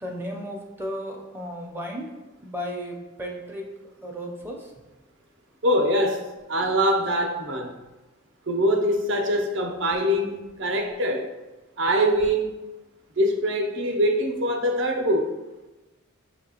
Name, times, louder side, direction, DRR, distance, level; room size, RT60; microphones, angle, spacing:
voice 1, 0.0-2.2 2.4-3.7 4.0-4.7, equal, 10° right, 0 dB, 0.5 m, -34 dB
voice 2, 5.6-7.7 8.5-11.3 11.8-12.6 13.2-15.3, equal, 60° right, 3 dB, 0.6 m, -23 dB
6.0 x 2.8 x 2.8 m, 1.1 s
head